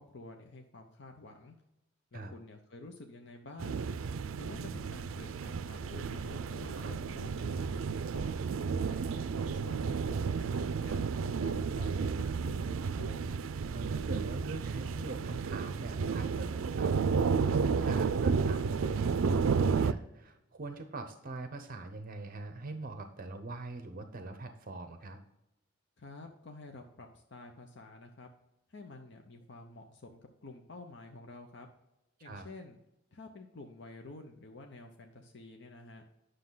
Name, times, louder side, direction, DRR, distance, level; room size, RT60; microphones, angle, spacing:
voice 1, 0.0-1.5 2.1-3.8 4.4-8.4 8.8-13.4 26.0-28.3 28.7-31.7 32.2-32.8 33.1-36.0, left 2 dB, 60° left, 4 dB, 0.8 m, -50 dB
sound 1, 3.6-19.9, right 5 dB, 85° right, 0.4 m, -32 dB
voice 2, 6.6-7.0 13.7-25.2 32.2-32.5, right 2 dB, 45° right, 8 dB, 0.8 m, -42 dB
9.6 x 6.5 x 3.9 m, 0.89 s
head